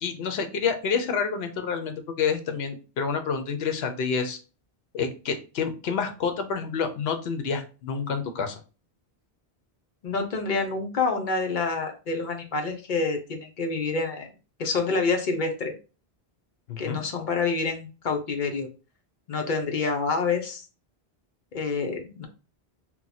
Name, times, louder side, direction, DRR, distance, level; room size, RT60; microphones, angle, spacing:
voice 1, 0.0-4.4 4.9-8.6 16.7-17.0, left 6 dB, 80° left, 6 dB, 0.9 m, -28 dB
voice 2, 10.0-14.3 14.6-15.7 16.8-18.7 19.3-20.6 21.5-22.3, left 4 dB, 55° left, 3 dB, 0.8 m, -27 dB
2.9 x 2.2 x 4.0 m, 0.33 s
omnidirectional pair, 1.0 m